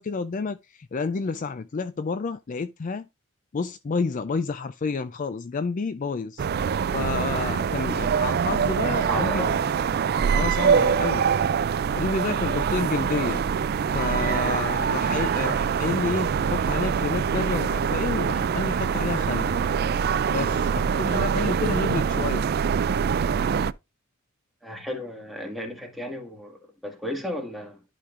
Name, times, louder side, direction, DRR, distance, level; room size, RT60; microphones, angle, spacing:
voice 1, 0.0-3.1 3.5-6.5 6.9-9.4 10.3-11.3 11.9-13.4 13.9-19.5 20.3-22.5, left 4 dB, 40° left, 0.4 m, -29 dB
sound 1, 6.4-23.7, right 7 dB, 50° right, 0.3 m, -24 dB
voice 2, 8.6-9.7 24.6-27.8, equal, ahead, 1.8 m, -34 dB
11.5 x 5.1 x 2.5 m
head